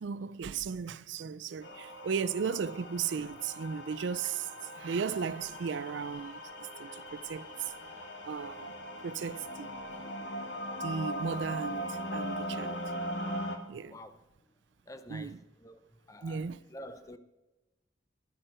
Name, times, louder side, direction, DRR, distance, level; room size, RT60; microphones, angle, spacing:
voice 1, 0.0-4.5 4.8-7.7 8.2-8.8 9.0-9.8 10.8-12.8 13.7-14.0 15.1-15.4 16.2-16.6, right 6 dB, 70° right, 0.4 m, -36 dB
sound 1, 1.6-13.6, equal, 65° left, 1.4 m, -40 dB
voice 2, 14.9-15.8 16.1-17.2, equal, 15° left, 0.6 m, -48 dB
12.0 x 11.0 x 4.4 m
head